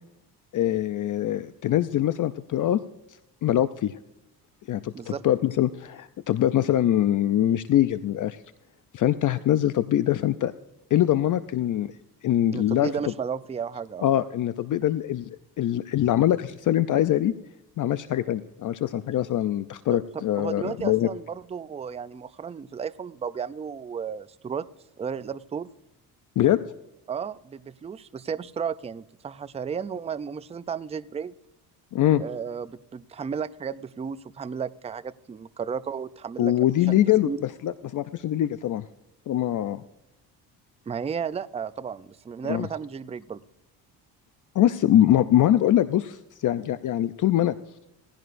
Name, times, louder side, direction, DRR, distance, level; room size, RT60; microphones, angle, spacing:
voice 1, 0.5-2.8 3.4-4.0 4.7-8.4 8.9-10.5 10.9-11.9 12.2-13.1 14.0-15.3 15.6-17.3 17.8-21.1 26.4-26.6 31.9-32.2 36.4-38.9 39.3-39.8 42.5-42.7 44.5-47.6, left 12 dB, 50° left, 13 dB, 0.5 m, -23 dB
voice 2, 12.5-14.1 19.9-24.7 25.0-25.7 27.1-31.3 32.2-36.5 36.9-37.4 40.9-43.4, right 6 dB, 15° right, 14 dB, 0.4 m, -33 dB
17.0 x 15.5 x 2.6 m, 0.86 s
cardioid pair, 110°, 40 cm